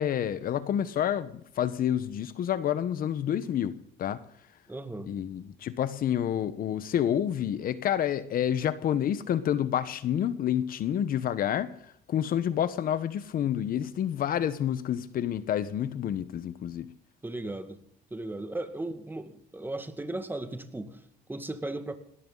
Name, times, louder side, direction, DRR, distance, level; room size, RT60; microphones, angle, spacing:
voice 1, 0.0-4.2 5.1-11.7 12.1-16.9, left 10 dB, 60° left, 14 dB, 1.2 m, -29 dB
voice 2, 4.7-5.1 17.2-17.8 18.1-21.9, right 2 dB, 10° right, 9 dB, 2.1 m, -36 dB
20.0 x 17.5 x 4.0 m, 0.65 s
cardioid pair, 110°, 17 cm